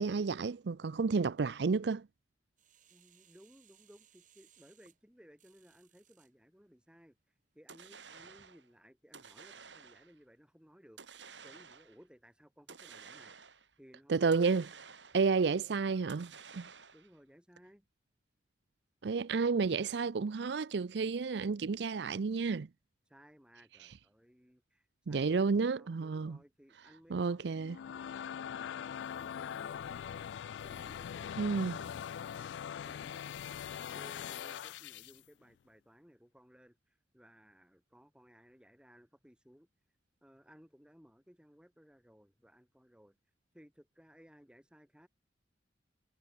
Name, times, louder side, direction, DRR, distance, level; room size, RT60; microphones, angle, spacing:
voice 1, 0.0-2.1 14.1-14.6 15.1-16.7 19.0-22.7 25.1-26.4 27.1-27.8 31.4-31.8, right 4 dB, 65° right, 0.5 m, -31 dB
sound 1, 2.6-6.3 6.9-7.0, right 10 dB, 45° right, 3.7 m, -66 dB
voice 2, 2.9-7.2 7.5-13.4 13.8-14.7 16.9-17.9 19.5-19.7 23.1-27.5 27.8-39.7 40.2-43.2 43.5-45.1, equal, 5° right, 4.0 m, -61 dB
sound 2, 7.7-8.7 9.1-10.2 11.0-12.0 12.7-13.7 14.3-15.4 16.1-17.2, right 6 dB, 80° right, 5.4 m, -53 dB
sound 3, 27.5-35.2, left 8 dB, 75° left, 0.3 m, -42 dB
head